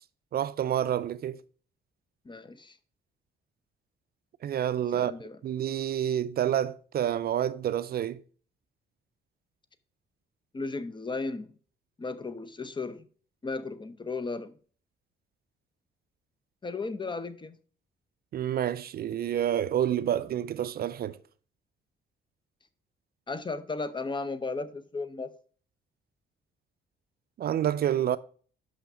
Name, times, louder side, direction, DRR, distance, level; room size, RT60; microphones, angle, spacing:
voice 1, 0.3-1.4 4.4-5.1 5.4-8.2 18.3-21.2 27.4-28.2, right 10 dB, 50° right, 0.4 m, -28 dB
voice 2, 2.3-2.8 4.9-5.4 10.5-11.5 12.0-13.1 13.4-14.5 16.6-17.6 23.3-25.3, left 3 dB, 25° left, 0.6 m, -35 dB
5.7 x 5.7 x 5.0 m
cardioid pair, 90°, 20 cm